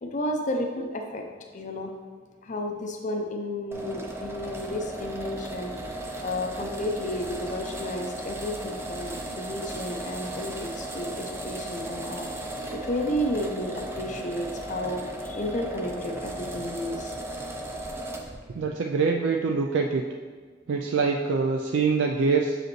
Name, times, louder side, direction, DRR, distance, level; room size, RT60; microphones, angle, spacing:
voice 1, 0.0-1.2 1.5-1.9 2.4-5.7 6.2-17.1, left 1 dB, 40° left, 3 dB, 0.5 m, -32 dB
sound 1, 3.7-18.4, right 1 dB, 15° right, 0.5 m, -36 dB
voice 2, 18.5-20.0 20.7-22.6, right 4 dB, 75° right, 1 dB, 0.4 m, -24 dB
6.3 x 4.9 x 3.1 m, 1.5 s
head